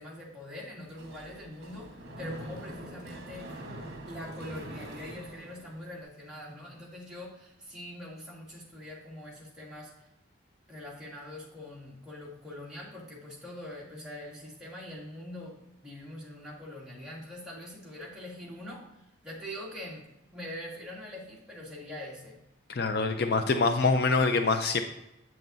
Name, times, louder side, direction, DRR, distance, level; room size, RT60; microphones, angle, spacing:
voice 1, 0.0-3.6 4.1-10.1 10.7-15.6 15.8-22.4, left 1 dB, 5° right, -6 dB, 1.9 m, -43 dB
Mechanisms, 0.8-6.0, right 1 dB, 55° right, 1.3 m, -44 dB
voice 2, 22.7-24.8, left 4 dB, 55° left, 7 dB, 0.4 m, -25 dB
7.7 x 7.6 x 2.6 m, 0.90 s
head